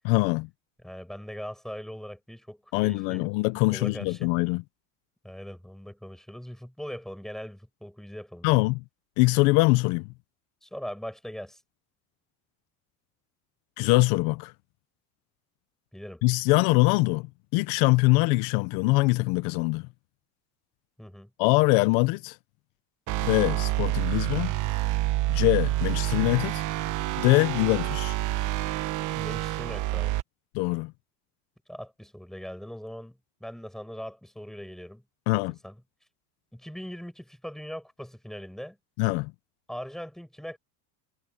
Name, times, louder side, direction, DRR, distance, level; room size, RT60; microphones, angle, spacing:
voice 1, 0.0-0.5 2.7-4.6 8.4-8.8 9.2-10.1 13.8-14.5 16.2-17.3 17.5-19.9 21.4-22.4 23.2-24.5 25.3-26.6 27.2-28.1 30.5-30.9 35.3-35.6 39.0-39.3, left 24 dB, 80° left, 0.8 m, -23 dB
voice 2, 0.8-3.3 3.7-4.3 5.2-8.7 10.6-11.6 15.9-16.2 21.0-21.3 29.1-30.1 31.7-35.0 35.6-35.8 36.5-38.8 39.7-40.6, equal, ahead, 7.8 m, -40 dB
sound 1, 23.1-30.2, right 16 dB, 55° right, 1.2 m, -28 dB
cardioid pair, 145°, 36 cm